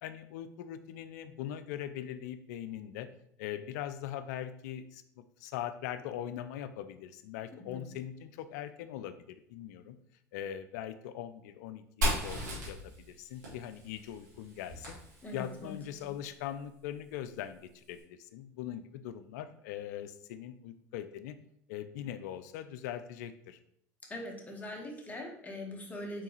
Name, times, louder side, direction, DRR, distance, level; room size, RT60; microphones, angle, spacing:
voice 1, 0.0-3.1 3.4-5.0 5.4-10.0 10.3-15.0 15.3-21.4 21.7-23.6, left 10 dB, 75° left, 12 dB, 0.4 m, -41 dB
Fire, 12.0-15.7, equal, 90° right, 1.9 m, -36 dB
voice 2, 15.2-15.8 24.1-26.2, left 1 dB, 15° left, 0 dB, 1.3 m, -42 dB
4.5 x 3.7 x 3.1 m, 0.69 s
hypercardioid pair, 80°, 9 cm